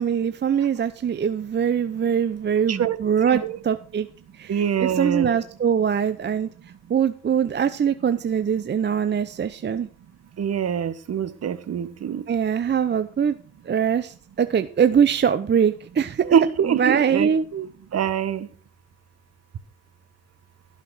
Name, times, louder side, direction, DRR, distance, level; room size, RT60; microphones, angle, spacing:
voice 1, 0.0-4.1 4.3-6.5 6.9-9.9 12.3-13.4 13.6-16.3 16.7-17.4, right 7 dB, 30° right, 0.7 m, -22 dB
voice 2, 3.2-3.6 4.5-5.4 10.4-12.2 16.2-17.7 17.9-18.5, right 8 dB, 45° right, 1.2 m, -24 dB
16.5 x 5.8 x 6.3 m
cardioid pair, 90°, 34 cm